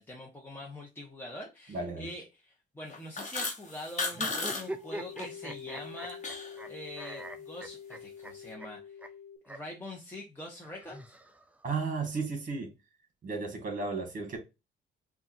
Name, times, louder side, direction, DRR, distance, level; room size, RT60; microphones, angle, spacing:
voice 1, 0.0-9.0 9.5-11.1, left 1 dB, 10° left, 1.1 m, -44 dB
voice 2, 1.7-2.1 11.6-12.7 13.2-14.4, right 4 dB, 40° right, 1.9 m, -34 dB
sound 1, 2.9-4.6 4.9-5.2 5.7-6.6, left 3 dB, 35° left, 1.3 m, -34 dB
sound 2, 4.1-6.7 7.0-8.3 8.6-8.7 9.0-9.1 9.4-9.6 10.6-11.6, right 1 dB, 5° right, 0.5 m, -42 dB
sound 3, 4.4-9.4, left 7 dB, 90° left, 1.0 m, -47 dB
5.4 x 2.6 x 2.7 m
cardioid pair, 90°, 20 cm